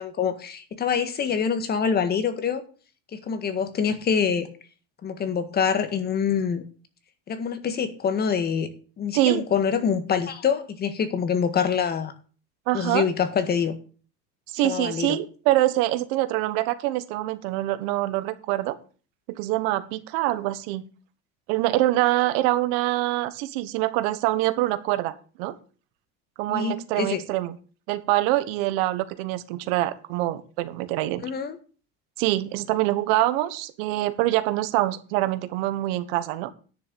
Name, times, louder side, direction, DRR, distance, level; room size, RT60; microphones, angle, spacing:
voice 1, 0.0-2.6 3.1-4.5 5.0-6.6 7.3-8.7 9.0-12.1 12.7-13.7 14.6-15.2 26.5-27.2 31.2-31.6, left 7 dB, 30° left, 9 dB, 1.7 m, -25 dB
voice 2, 9.1-9.5 12.7-13.1 14.5-18.7 19.3-20.8 21.5-25.1 25.4-25.5 26.4-27.6 27.9-31.2 32.2-36.5, right 16 dB, 80° right, 13 dB, 1.3 m, -25 dB
10.0 x 6.8 x 6.9 m, 0.38 s
cardioid pair, 135°, 30 cm